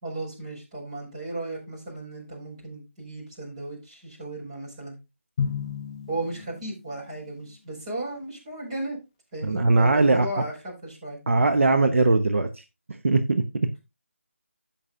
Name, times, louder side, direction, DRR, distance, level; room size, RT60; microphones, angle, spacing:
voice 1, 0.0-5.0 6.1-9.0 9.3-11.2, right 2 dB, 25° right, 4.7 m, -35 dB
Drum, 5.4-7.1, left 7 dB, 25° left, 0.6 m, -32 dB
voice 2, 9.4-10.3 11.3-12.6 13.0-13.8, right 3 dB, 70° right, 0.9 m, -20 dB
16.0 x 5.9 x 2.5 m
figure-of-eight pair, 170°, 7 cm